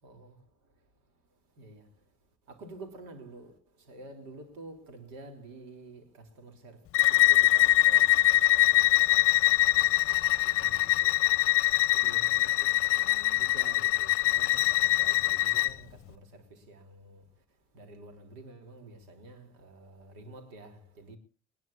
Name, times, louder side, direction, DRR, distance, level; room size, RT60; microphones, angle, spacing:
voice 1, 0.0-0.4 1.6-1.8 2.5-3.5 3.9-8.3 8.5-9.9 10.4-11.2 11.9-17.2 17.7-21.2, right 2 dB, 65° right, 3.8 m, -49 dB
Bowed string instrument, 6.9-15.7, left 16 dB, 45° left, 0.8 m, -23 dB
21.5 x 20.0 x 2.8 m
figure-of-eight pair, 60°, 31 cm